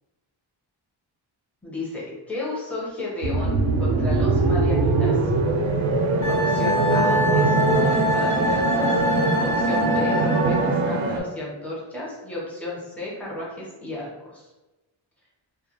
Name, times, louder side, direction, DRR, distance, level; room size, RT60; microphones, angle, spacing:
voice 1, 1.6-5.2 6.2-14.5, left 2 dB, 5° left, -6 dB, 0.7 m, -33 dB
sound 1, 3.2-11.2, right 3 dB, 80° right, 0.5 m, -22 dB
Wind instrument woodwind instrument, 6.2-10.7, left 1 dB, 70° left, 1.1 m, -26 dB
2.3 x 2.2 x 2.9 m, 1.1 s
wide cardioid pair, 100°, 47 cm